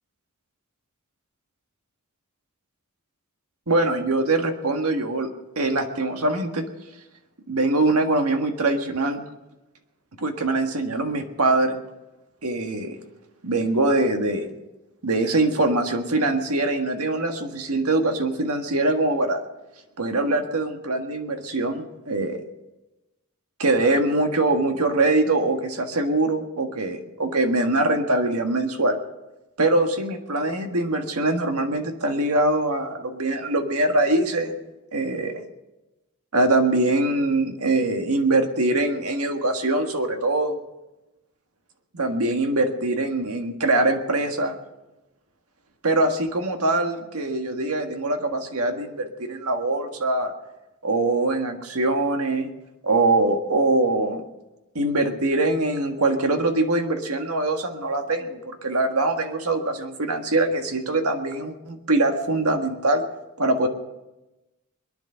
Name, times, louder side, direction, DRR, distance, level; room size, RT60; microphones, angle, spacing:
voice 1, 3.7-5.3 5.6-6.6 7.5-9.3 10.2-11.8 12.4-13.0 13.4-14.5 15.0-19.4 20.0-22.4 23.6-29.0 29.6-34.6 34.9-35.4 36.3-40.6 41.9-44.6 45.8-50.3 50.8-52.5 52.8-54.2 54.8-63.0 63.4-63.7, right 2 dB, 85° right, 5 dB, 1.7 m, -23 dB
23.0 x 10.5 x 5.7 m, 1.0 s
head